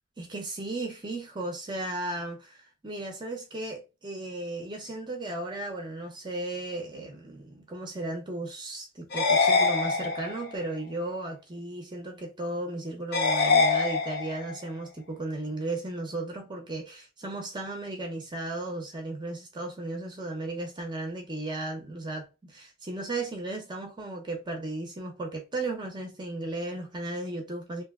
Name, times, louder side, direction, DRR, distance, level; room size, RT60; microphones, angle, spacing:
voice 1, 0.2-27.8, right 2 dB, 20° right, 0.6 m, -35 dB
sound 1, 9.1-10.5 13.1-14.5, left 4 dB, 45° left, 0.6 m, -24 dB
2.8 x 2.1 x 3.4 m
head